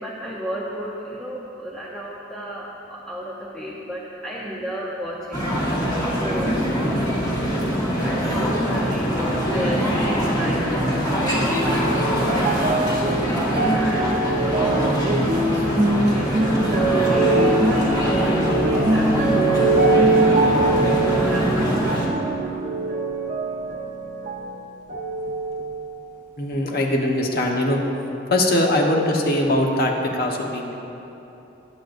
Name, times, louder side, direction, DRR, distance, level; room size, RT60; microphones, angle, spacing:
voice 1, 0.0-5.9 6.1-6.8 7.8-10.7 11.3-12.6 13.6-14.2 14.5-20.6 21.1-22.0, equal, 5° left, -6 dB, 0.8 m, -34 dB
sound 1, 5.3-22.1, equal, 20° left, 1.7 m, -23 dB
sound 2, 11.1-24.6 24.9-25.8 26.5-26.6, right 2 dB, 40° right, 1.1 m, -22 dB
voice 2, 26.4-27.8 28.3-30.8, left 1 dB, 55° left, 0 dB, 1.2 m, -21 dB
21.0 x 8.0 x 2.6 m, 3.0 s
head